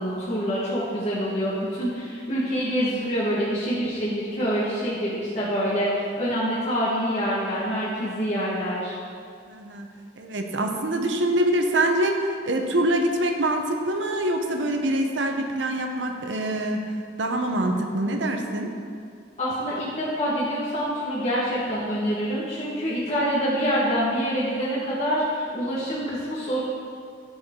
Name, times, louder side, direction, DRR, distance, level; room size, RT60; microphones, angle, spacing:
voice 1, 0.0-8.9 19.4-26.6, equal, 40° left, -10 dB, 1.6 m, -26 dB
voice 2, 9.5-9.9 10.2-18.7, right 1 dB, 90° right, 4 dB, 0.9 m, -25 dB
13.5 x 4.8 x 3.7 m, 2.3 s
head